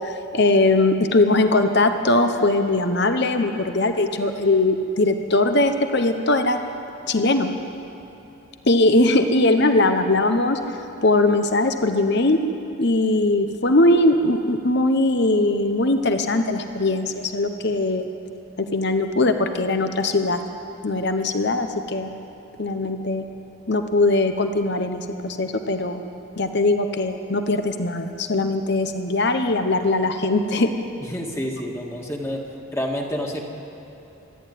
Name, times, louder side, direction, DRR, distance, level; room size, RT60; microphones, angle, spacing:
voice 1, 0.0-6.6 7.1-7.5 8.7-10.6 11.0-12.4 12.8-18.1 18.6-20.4 20.8-22.1 22.6-23.2 23.7-26.0 26.4-30.7, left 2 dB, 50° left, 7 dB, 1.0 m, -20 dB
voice 2, 31.0-32.4 32.7-33.4, equal, 15° left, 0 dB, 1.8 m, -28 dB
26.0 x 11.0 x 9.4 m, 2.9 s
head